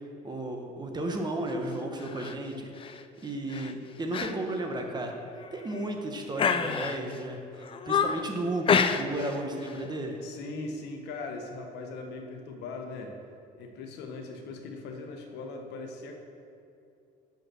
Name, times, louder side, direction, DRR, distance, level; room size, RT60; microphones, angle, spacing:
voice 1, 0.2-2.9 3.2-5.2 5.5-10.2, right 1 dB, 25° right, 3 dB, 1.0 m, -34 dB
sound 1, 2.0-2.3 2.8-3.0 3.5-3.7 4.1-4.3 4.7-4.8 5.4-5.9 6.4-7.2 7.6-8.3 8.7-9.3 9.6-9.8, left 6 dB, 30° left, 0.4 m, -28 dB
voice 2, 10.2-13.1 13.6-16.2, left 3 dB, 85° left, 3 dB, 1.0 m, -40 dB
6.5 x 5.3 x 6.2 m, 2.6 s
cardioid pair, 110°, 17 cm